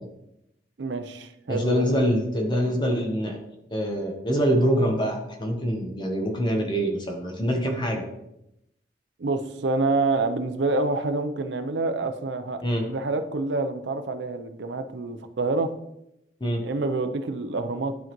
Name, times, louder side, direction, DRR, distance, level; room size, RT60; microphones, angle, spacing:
voice 1, 0.8-1.9 9.2-12.6 12.9-15.7 16.6-18.0, right 3 dB, 70° right, 9 dB, 0.6 m, -27 dB
voice 2, 1.5-3.4 3.7-8.1 12.6-12.8 16.4-16.6, equal, 25° left, 2 dB, 1.0 m, -25 dB
11.5 x 3.9 x 3.0 m, 0.84 s
head